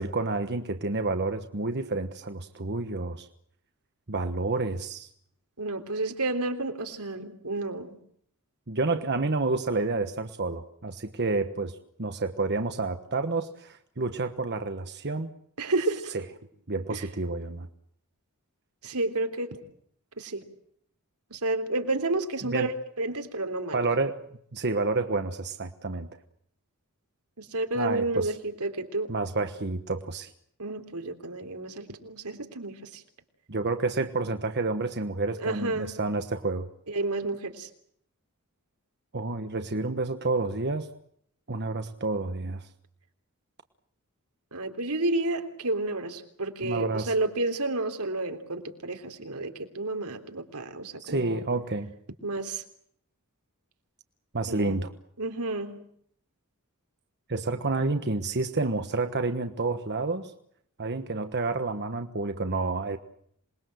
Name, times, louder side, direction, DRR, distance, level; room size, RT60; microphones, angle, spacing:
voice 1, 0.0-3.3 4.1-5.1 8.7-15.3 16.1-16.2 16.7-17.7 22.4-22.7 23.7-24.2 24.5-26.1 27.7-28.3 29.1-30.3 33.5-36.7 39.1-40.9 41.5-42.7 46.6-47.1 51.0-51.9 54.3-54.9 57.3-60.3 60.8-63.0, right 3 dB, 50° right, 8 dB, 1.3 m, -29 dB
voice 2, 5.6-8.0 15.6-16.1 16.9-17.0 18.8-19.5 20.2-20.4 21.3-22.7 23.0-23.9 27.4-29.1 30.6-33.0 35.4-35.9 36.9-37.7 44.5-51.4 52.2-52.6 54.5-54.8 55.2-55.9, right 2 dB, 85° right, 6 dB, 3.5 m, -31 dB
27.0 x 21.5 x 7.9 m, 0.67 s
head